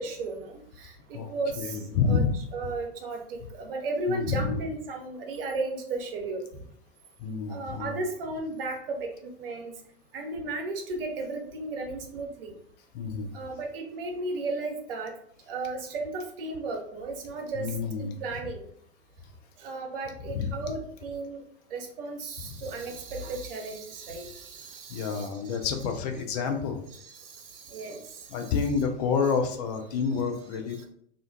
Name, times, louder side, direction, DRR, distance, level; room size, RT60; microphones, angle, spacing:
voice 1, 0.0-2.2 2.5-6.5 7.5-9.7 10.1-12.5 13.3-15.1 15.5-17.7 18.0-18.6 19.6-21.4 21.7-25.6 26.9-28.5, right 3 dB, 55° right, 2 dB, 0.7 m, -35 dB
voice 2, 1.1-2.3 4.1-4.5 7.2-7.9 12.9-13.3 17.5-18.2 20.3-20.5 24.9-26.9 28.3-30.8, left 5 dB, 35° left, 5 dB, 0.4 m, -29 dB
2.5 x 2.1 x 2.4 m, 0.66 s
figure-of-eight pair, 90°, 35 cm